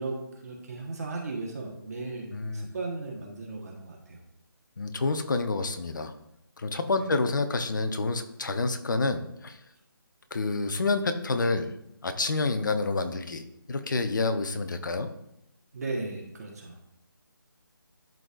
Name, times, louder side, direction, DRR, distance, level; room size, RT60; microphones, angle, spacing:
voice 1, 0.0-4.2 6.9-7.1 15.7-16.8, right 3 dB, 45° right, 0 dB, 1.4 m, -36 dB
voice 2, 2.3-2.7 4.8-6.1 6.6-9.6 10.3-11.7 12.0-15.1, left 3 dB, 60° left, 8 dB, 0.8 m, -28 dB
12.0 x 4.0 x 2.6 m, 0.81 s
figure-of-eight pair, 160°, 12 cm